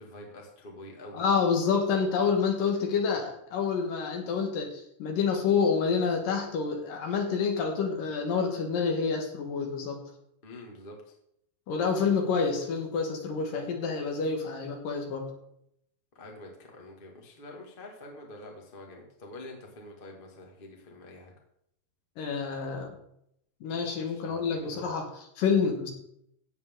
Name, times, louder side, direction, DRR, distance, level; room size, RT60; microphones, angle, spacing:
voice 1, 0.0-1.2 10.4-11.1 16.1-21.3 24.0-24.9, left 1 dB, 40° left, 0 dB, 0.7 m, -46 dB
voice 2, 1.1-10.0 11.7-15.3 22.2-23.0 23.6-25.9, left 5 dB, 60° left, 3 dB, 2.7 m, -28 dB
16.0 x 7.8 x 3.8 m, 0.74 s
omnidirectional pair, 5.0 m